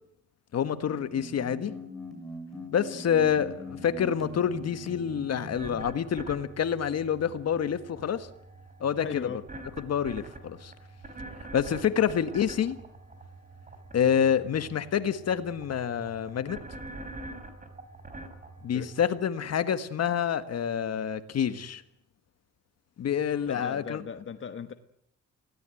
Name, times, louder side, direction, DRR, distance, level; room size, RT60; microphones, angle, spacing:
voice 1, 0.5-1.7 2.7-8.3 8.8-9.4 9.8-10.7 11.5-12.8 13.9-16.6 18.6-21.8 23.0-24.0, left 8 dB, 55° left, 11 dB, 1.6 m, -27 dB
sound 1, 1.1-6.0, equal, ahead, 6.4 m, -42 dB
sound 2, 3.2-19.1, right 2 dB, 25° right, 4.2 m, -46 dB
voice 2, 9.0-9.4 18.7-18.9 23.5-24.7, left 7 dB, 40° left, 8 dB, 1.3 m, -37 dB
24.0 x 17.5 x 9.2 m, 0.74 s
cardioid pair, 90°, 30 cm